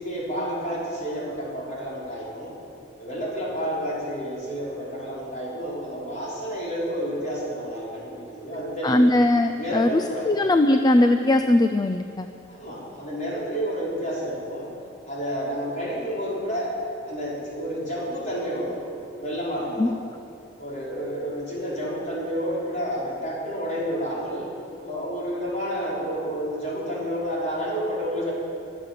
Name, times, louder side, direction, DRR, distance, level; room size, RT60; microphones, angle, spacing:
voice 1, 0.0-2.5 3.0-9.0 9.5-10.3 12.5-14.7 15.1-16.7 17.0-18.8 19.2-19.9 20.6-24.5 24.8-28.3, equal, 40° left, -6 dB, 5.2 m, -30 dB
voice 2, 8.8-12.3 19.8-19.9, left 1 dB, 20° left, 8 dB, 0.4 m, -20 dB
23.0 x 8.2 x 7.6 m, 2.6 s
head